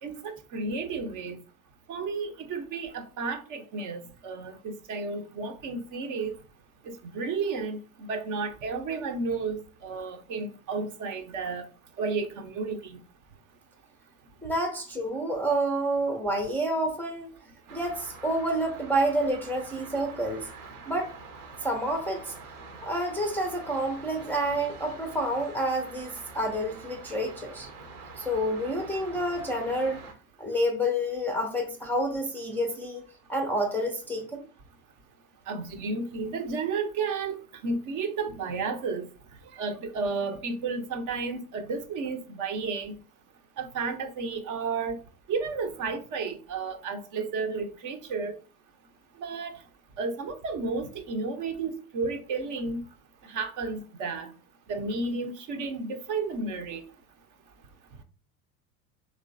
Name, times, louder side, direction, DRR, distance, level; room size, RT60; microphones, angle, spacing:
voice 1, 0.0-1.4 1.9-6.3 6.9-11.6 12.0-13.0 35.5-39.1 39.5-43.0 43.6-45.0 45.3-48.4 49.2-49.6 50.0-52.8 53.3-54.3 54.7-56.8, right 4 dB, 45° right, 0.7 m, -32 dB
voice 2, 14.4-17.3 17.7-20.5 20.9-21.1 21.6-22.3 22.8-27.7 28.2-30.0 30.4-33.0 33.3-34.4, right 1 dB, 5° left, 0.5 m, -29 dB
sound 1, 17.7-30.1, right 4 dB, 80° right, 0.9 m, -45 dB
3.2 x 3.1 x 2.5 m
hypercardioid pair, 80°, 45 cm